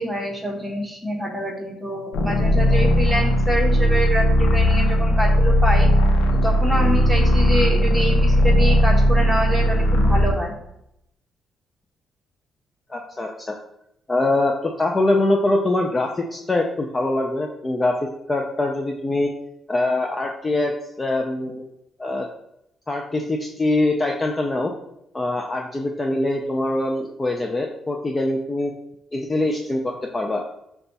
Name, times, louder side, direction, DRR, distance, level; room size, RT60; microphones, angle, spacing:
voice 1, 0.0-5.9 6.3-10.5, equal, 5° right, -1 dB, 1.1 m, -26 dB
sound 1, 2.1-10.4, equal, 90° left, 0.5 m, -17 dB
voice 2, 12.9-13.6 14.1-19.3 19.7-20.7 21.0-21.6 22.0-22.3 22.9-24.7 25.1-28.7 29.1-30.4, left 2 dB, 25° left, 2 dB, 0.4 m, -23 dB
5.2 x 2.3 x 3.9 m, 0.80 s
cardioid pair, 90°, 0 cm